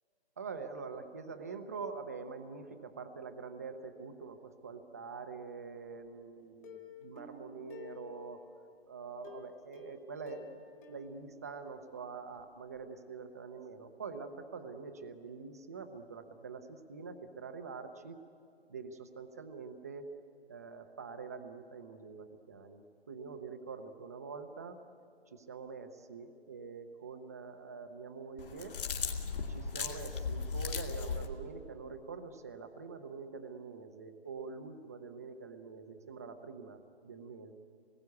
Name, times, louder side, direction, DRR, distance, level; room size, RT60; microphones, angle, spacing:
voice 1, 0.4-8.5 8.9-18.2 18.7-20.1 20.5-24.8 25.3-28.8 29.5-37.5, right 5 dB, 15° right, 8 dB, 0.6 m, -45 dB
Plucked string instrument, 6.6-8.6 9.2-12.0 12.4-12.5 12.8-12.9, left 5 dB, 15° left, 1.6 m, -52 dB
sound 1, 28.4-31.3, left 5 dB, 55° left, 2.6 m, -37 dB
26.0 x 20.5 x 9.4 m, 2.6 s
hypercardioid pair, 170°, 33 cm